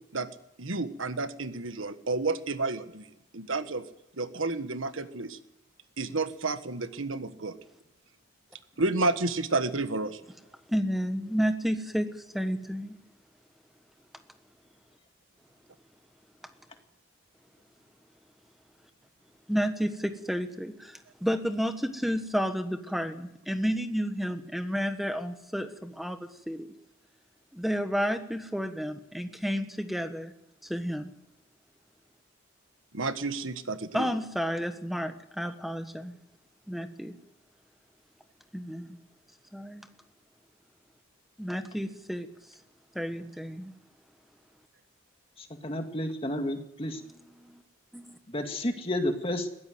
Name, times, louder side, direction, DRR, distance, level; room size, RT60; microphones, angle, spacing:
voice 1, 0.6-3.9 4.2-5.4 6.0-7.6 8.8-10.2 32.9-34.1, right 3 dB, 75° right, 10 dB, 1.5 m, -31 dB
voice 2, 10.7-12.9 19.5-26.7 27.5-30.3 30.6-31.1 33.9-36.2 36.7-37.1 38.5-39.0 39.5-39.9 41.4-42.3 42.9-43.7 47.4-47.6 47.9-48.2, equal, ahead, 7 dB, 1.3 m, -31 dB
voice 3, 45.4-47.0 48.3-49.5, left 1 dB, 25° left, 5 dB, 2.0 m, -31 dB
21.5 x 16.5 x 7.9 m, 0.85 s
head